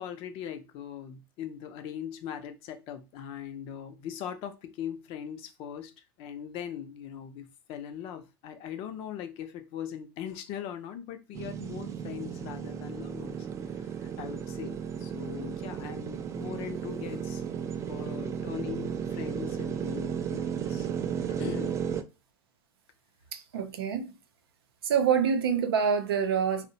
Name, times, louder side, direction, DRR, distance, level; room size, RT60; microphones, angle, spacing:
voice 1, 0.0-17.4 17.9-20.9 21.3-21.8, left 9 dB, 50° left, 0.5 m, -40 dB
sound 1, 11.3-22.0, right 8 dB, 25° right, 0.3 m, -34 dB
voice 2, 23.3-24.1 24.8-26.7, right 7 dB, 80° right, 0.5 m, -26 dB
2.7 x 2.1 x 2.7 m
hypercardioid pair, 105°, 12 cm